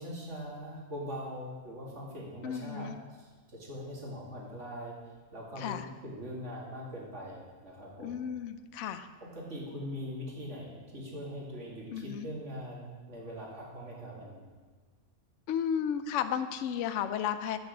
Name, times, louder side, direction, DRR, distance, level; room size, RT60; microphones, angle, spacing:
voice 1, 0.0-2.9 3.2-5.0 5.3-5.8 6.0-8.2 9.3-14.5, equal, 55° right, -4 dB, 2.7 m, -41 dB
voice 2, 2.4-3.0 5.6-5.9 8.0-9.1 11.9-12.3 15.5-17.6, left 8 dB, 65° left, 10 dB, 0.9 m, -33 dB
9.3 x 6.4 x 6.5 m, 1.4 s
omnidirectional pair, 1.5 m